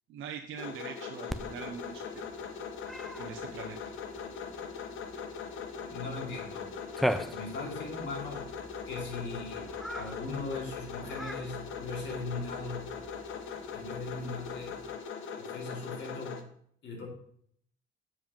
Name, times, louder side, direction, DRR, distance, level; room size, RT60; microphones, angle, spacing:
voice 1, 0.1-2.1 3.2-3.8, right 7 dB, 80° right, 3 dB, 0.8 m, -42 dB
sound 1, 0.6-16.4, left 6 dB, 80° left, 1.0 m, -41 dB
Cat, 1.3-15.0, equal, ahead, 0.5 m, -42 dB
voice 2, 5.9-6.7 7.3-8.5 8.9-9.7 9.9-12.9 13.7-14.8 15.4-16.5 16.8-17.1, left 3 dB, 65° left, 0 dB, 2.8 m, -39 dB
7.5 x 5.1 x 5.4 m, 0.64 s
cardioid pair, 90°, 20 cm